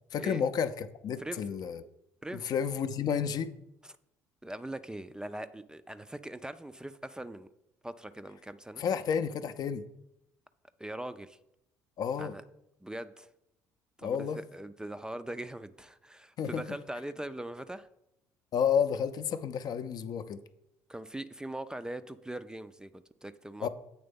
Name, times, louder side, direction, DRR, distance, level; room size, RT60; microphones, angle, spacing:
voice 1, 0.1-1.8 2.3-3.5 8.8-9.8 12.0-12.4 14.0-14.4 16.4-16.6 18.5-20.4 23.6-23.7, left 7 dB, 50° left, 0.5 m, -31 dB
voice 2, 4.4-7.5 7.8-8.8 10.8-11.4 12.2-12.4 12.8-13.3 14.0-17.9 20.9-23.7, right 1 dB, 10° right, 0.4 m, -41 dB
7.9 x 3.4 x 5.2 m
hypercardioid pair, 60°, 9 cm